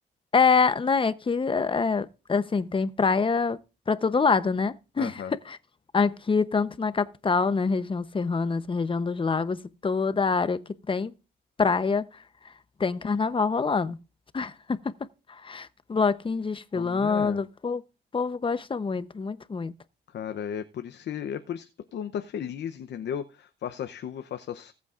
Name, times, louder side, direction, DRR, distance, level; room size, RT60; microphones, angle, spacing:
voice 1, 0.3-3.6 3.9-5.2 5.5-5.6 5.9-10.6 10.9-11.1 11.6-12.1 12.8-14.0 14.3-14.5 15.3-17.8 18.1-19.7, left 5 dB, 25° left, 0.8 m, -25 dB
voice 2, 5.0-5.3 16.7-17.4 20.1-24.7, left 8 dB, 60° left, 0.8 m, -35 dB
19.5 x 8.2 x 2.5 m
cardioid pair, 90°, 20 cm